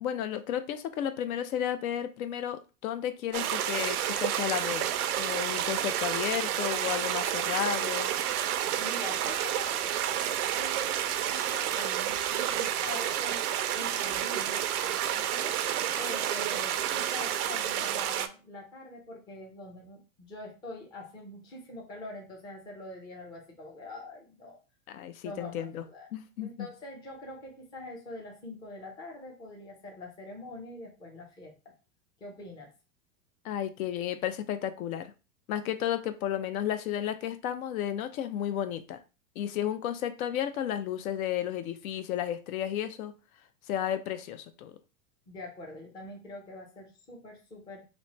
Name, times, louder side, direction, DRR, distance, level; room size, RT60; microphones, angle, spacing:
voice 1, 0.0-8.1 24.9-25.8 26.1-26.7 33.4-35.1 35.5-39.0 39.4-43.1 43.7-44.7, left 10 dB, 70° left, 10 dB, 0.6 m, -33 dB
sound 1, 3.3-18.3, right 11 dB, 90° right, 0.5 m, -30 dB
voice 2, 8.8-13.4 13.7-14.6 15.1-15.6 16.0-24.6 25.2-26.1 26.4-31.5 32.2-32.7 45.3-47.8, left 2 dB, 10° left, 0 dB, 0.4 m, -44 dB
3.0 x 2.1 x 3.8 m, 0.31 s
supercardioid pair, 145°, 43 cm